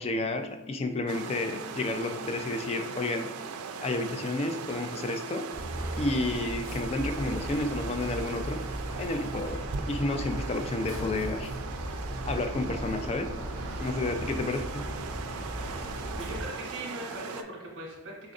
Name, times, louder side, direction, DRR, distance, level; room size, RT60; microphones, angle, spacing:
voice 1, 0.0-3.3 3.8-5.5 6.0-8.6 9.0-11.5 12.2-13.3 13.8-14.8, left 2 dB, 30° left, 6 dB, 0.3 m, -31 dB
sound 1, 1.1-17.4, right 5 dB, 85° right, 0.4 m, -39 dB
sound 2, 5.5-16.4, equal, 70° left, 1.2 m, -37 dB
voice 2, 15.6-18.3, right 1 dB, 65° right, -3 dB, 0.8 m, -41 dB
4.2 x 3.7 x 2.6 m, 0.99 s
head